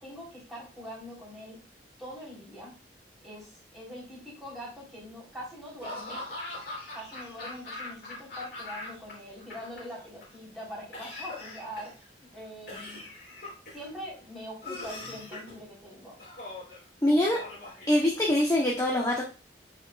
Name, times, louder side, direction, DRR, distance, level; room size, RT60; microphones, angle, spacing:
voice 1, 0.0-1.6 2.0-2.7 3.2-6.2 6.9-13.0 13.7-16.2, equal, ahead, -7 dB, 3.4 m, -43 dB
Laughter / Cough, 5.8-9.1 9.4-10.2 10.9-12.0 12.7-13.9 14.6-15.5 16.2-16.8 17.2-18.4, left 2 dB, 55° left, 3.2 m, -41 dB
voice 2, 17.0-17.4 17.9-19.2, left 1 dB, 20° left, -2 dB, 0.9 m, -24 dB
8.9 x 4.7 x 2.4 m, 0.35 s
head